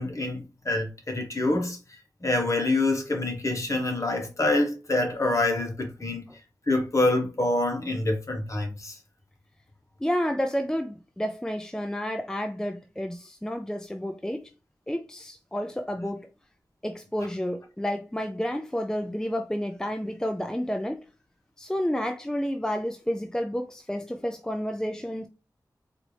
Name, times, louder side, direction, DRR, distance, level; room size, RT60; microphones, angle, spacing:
voice 1, 0.0-1.8 2.2-6.3 6.7-8.9, left 2 dB, 45° left, 1.2 m, -26 dB
voice 2, 10.0-14.4 14.9-16.3 16.8-21.0 21.6-25.3, equal, 10° left, 0.4 m, -30 dB
4.4 x 2.6 x 3.2 m
wide cardioid pair, 70°, 7 cm